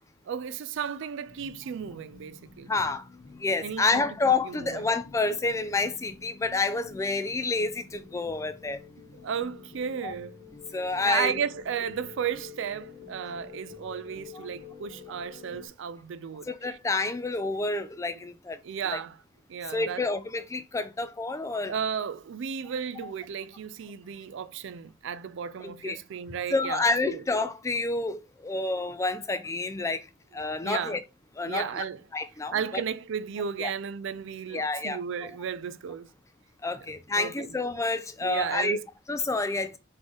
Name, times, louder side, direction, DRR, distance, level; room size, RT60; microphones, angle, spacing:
voice 1, 0.3-2.7 3.6-4.0 4.4-4.9 9.2-10.4 11.0-16.8 18.6-19.2 19.5-20.0 21.7-27.2 30.6-31.0 31.5-32.0 32.5-36.1 37.2-37.5 38.2-38.8, right 7 dB, 65° right, 0.4 m, -34 dB
sound 1, 1.3-15.7, left 5 dB, 40° left, 1.0 m, -49 dB
voice 2, 2.7-3.0 3.4-8.8 10.0-10.1 10.7-11.4 16.5-18.6 18.9-19.0 19.7-21.7 23.0-23.1 25.6-26.0 26.5-30.0 30.3-31.0 31.4-31.8 32.1-32.8 33.6-33.7 34.5-35.0 36.6-38.8 39.1-39.8, left 3 dB, 15° left, 0.3 m, -29 dB
3.7 x 3.1 x 3.8 m
head